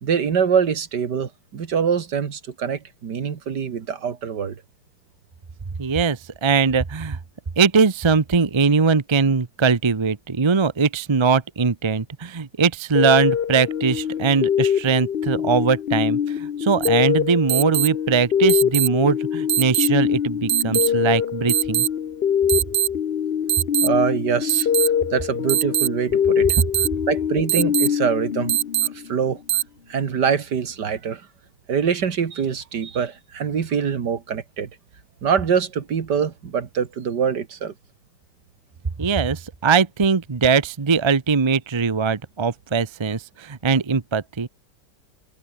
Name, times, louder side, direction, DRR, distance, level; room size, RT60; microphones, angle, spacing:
voice 1, 0.0-4.6 23.8-26.5 27.1-28.5 28.8-29.4 29.9-31.2 31.7-34.7 35.2-37.7, right 7 dB, 70° right, 2.3 m, -24 dB
voice 2, 5.8-7.2 7.6-21.9 39.0-44.5, right 5 dB, 25° right, 0.6 m, -21 dB
sound 1, 12.9-29.3, left 8 dB, 50° left, 0.7 m, -24 dB
sound 2, 16.8-16.9 17.5-17.9 18.5-18.9 19.5-19.9 20.5-20.9 21.5-21.9 22.5-22.9 23.5-23.9 24.5-24.9 25.5-25.9 26.5-26.9 27.5-27.9 28.5-28.9 29.5-29.6, right 12 dB, 90° right, 1.6 m, -20 dB
omnidirectional pair, 1.9 m